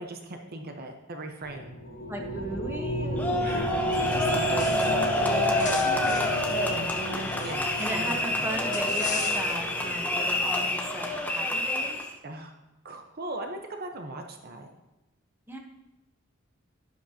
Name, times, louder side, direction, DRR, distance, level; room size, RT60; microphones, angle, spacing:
voice 1, 0.0-1.8 3.4-3.8 4.1-7.6 7.9-8.2 12.2-12.5 12.8-14.7, right 2 dB, 50° right, 4 dB, 1.0 m, -38 dB
sound 1, 1.4-11.2, equal, 80° left, 4.0 m, -34 dB
voice 2, 2.1-3.7 4.0-4.9 5.5-5.9 7.8-12.0 15.5-15.6, right 1 dB, 10° right, 1 dB, 1.1 m, -37 dB
sound 2, 3.2-12.1, left 1 dB, 10° left, 0.9 m, -27 dB
sound 3, 3.9-5.1 5.4-8.1 8.7-9.7, left 4 dB, 40° left, 1.6 m, -39 dB
11.5 x 10.0 x 2.9 m, 1.0 s
head